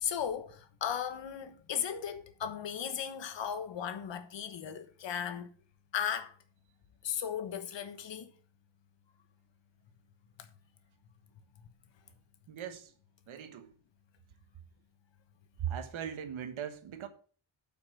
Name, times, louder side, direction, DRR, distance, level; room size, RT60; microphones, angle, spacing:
voice 1, 0.0-5.5 5.9-6.3 7.0-8.3, left 8 dB, 65° left, 1.3 m, -36 dB
voice 2, 12.5-12.9 13.3-13.7 15.6-17.1, right 9 dB, 80° right, 1.4 m, -39 dB
8.6 x 5.9 x 6.1 m
wide cardioid pair, 160°, 47 cm